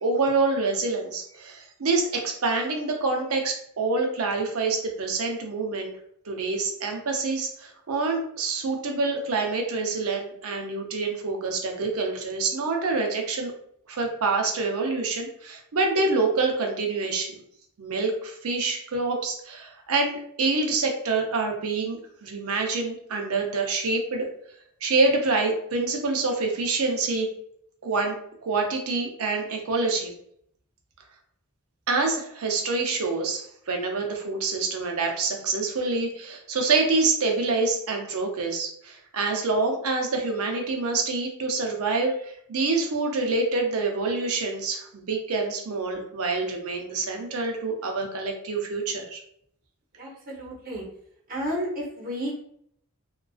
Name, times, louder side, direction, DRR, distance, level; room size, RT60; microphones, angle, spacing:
voice 1, 0.0-5.9 6.2-13.5 13.9-17.4 17.8-24.3 24.8-27.3 27.8-30.1 31.9-49.2, right 3 dB, 85° right, 3 dB, 0.5 m, -26 dB
voice 2, 50.0-50.8 51.3-52.4, equal, 40° right, -4 dB, 0.8 m, -32 dB
2.4 x 2.2 x 2.3 m, 0.68 s
head